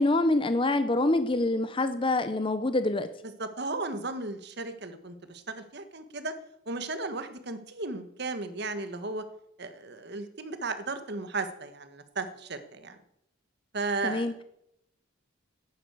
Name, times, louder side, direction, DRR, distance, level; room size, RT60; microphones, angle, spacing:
voice 1, 0.0-3.1 14.0-14.4, left 2 dB, 25° left, 10 dB, 0.7 m, -26 dB
voice 2, 3.4-6.3 6.7-9.2 9.6-13.0 13.7-14.3, right 3 dB, 55° right, 9 dB, 1.4 m, -35 dB
11.5 x 10.0 x 8.0 m, 0.77 s
head